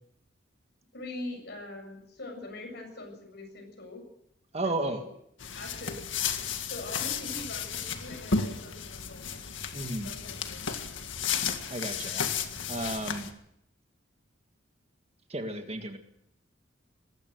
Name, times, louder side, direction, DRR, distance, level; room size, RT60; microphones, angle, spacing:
voice 1, 0.9-4.0 4.6-5.0 5.5-6.0 6.7-9.4 9.8-10.9, left 2 dB, 60° left, 4 dB, 7.5 m, -43 dB
voice 2, 4.5-5.0 9.7-10.1 11.7-12.2 12.7-13.3 15.3-16.0, right 2 dB, 35° right, 6 dB, 2.0 m, -33 dB
sound 1, 5.4-13.3, left 6 dB, 80° left, 2.0 m, -33 dB
20.5 x 16.5 x 8.0 m, 0.74 s
head